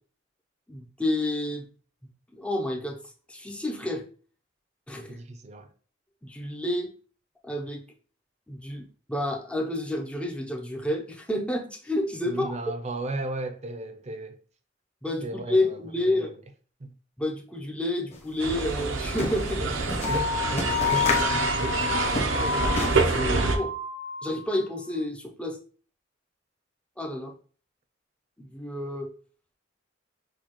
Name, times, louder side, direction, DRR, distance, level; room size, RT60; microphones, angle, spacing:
voice 1, 0.7-1.7 2.3-3.0 3.3-4.1 4.9-5.2 6.2-6.9 7.4-7.8 8.5-12.5 15.0-16.3 17.2-19.6 22.3-23.7 24.2-25.6 27.0-27.3 28.4-29.1, left 1 dB, 5° left, 0.5 m, -30 dB
voice 2, 5.1-5.7 12.2-14.4 15.2-16.3 16.8-16.9 19.6-21.5, right 2 dB, 35° right, 0.6 m, -35 dB
sound 1, 18.1-18.2 18.5-23.1, left 2 dB, 35° left, 1.1 m, -32 dB
sound 2, 18.4-23.6, right 3 dB, 85° right, 0.7 m, -27 dB
sound 3, 20.0-24.7, left 7 dB, 55° left, 0.5 m, -30 dB
6.4 x 2.3 x 2.9 m
head